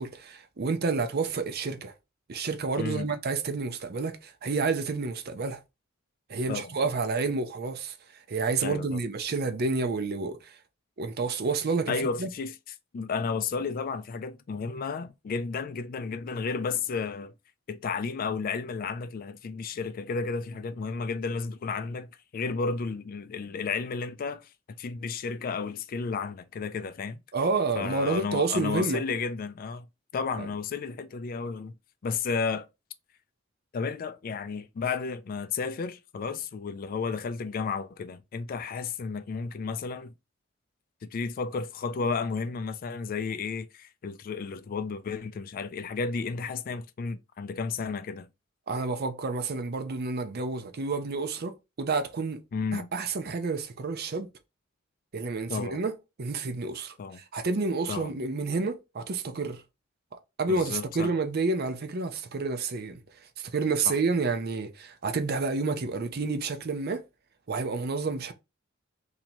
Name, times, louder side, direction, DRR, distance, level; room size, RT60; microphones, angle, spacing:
voice 1, 0.0-1.9 2.3-5.6 6.3-10.6 11.0-12.3 27.3-29.0 30.4-30.5 48.7-52.4 52.7-54.3 55.1-55.9 56.2-59.6 60.4-63.0 63.4-67.0 67.5-68.3, right 4 dB, 50° right, 0.6 m, -29 dB
voice 2, 2.8-3.1 6.5-6.8 8.6-9.0 11.9-12.5 12.9-17.3 17.7-27.2 27.8-29.9 30.1-31.7 32.0-32.7 33.7-40.1 41.0-48.3 52.5-52.9 55.5-55.8 57.0-57.2 57.9-58.1 60.5-61.1 63.9-64.0, left 5 dB, 45° left, 0.3 m, -32 dB
2.9 x 2.7 x 4.3 m
head